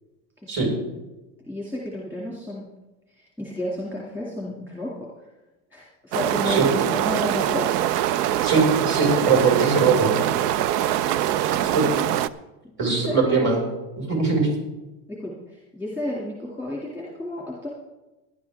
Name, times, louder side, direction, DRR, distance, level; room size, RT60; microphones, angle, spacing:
voice 1, 0.4-0.9 1.4-2.7 3.2-5.1 5.7-7.7 11.5-11.8 12.9-13.7 15.1-17.7, left 1 dB, 5° right, -5 dB, 2.3 m, -32 dB
sound 1, 6.1-12.3, right 12 dB, 85° right, 0.7 m, -23 dB
voice 2, 8.4-10.1 11.7-11.9 12.8-13.6 14.0-14.5, right 4 dB, 25° right, 0 dB, 5.0 m, -21 dB
17.0 x 11.5 x 3.5 m, 1.0 s
supercardioid pair, 150°, 46 cm